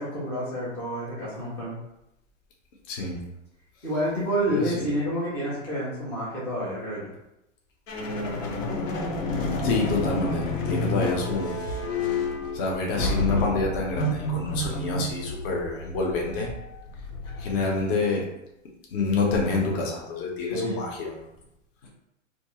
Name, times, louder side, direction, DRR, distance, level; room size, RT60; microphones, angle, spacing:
voice 1, 0.0-1.7 3.8-7.1 20.5-20.8, equal, 5° left, -7 dB, 0.3 m, -29 dB
voice 2, 2.9-3.2 4.5-4.8 9.6-11.6 12.5-16.5 17.4-18.3 18.9-21.2, left 3 dB, 45° left, -1 dB, 0.7 m, -27 dB
sound 1, 7.9-18.0, left 2 dB, 80° left, 0.7 m, -30 dB
2.3 x 2.3 x 2.9 m, 0.88 s
hypercardioid pair, 135°, 38 cm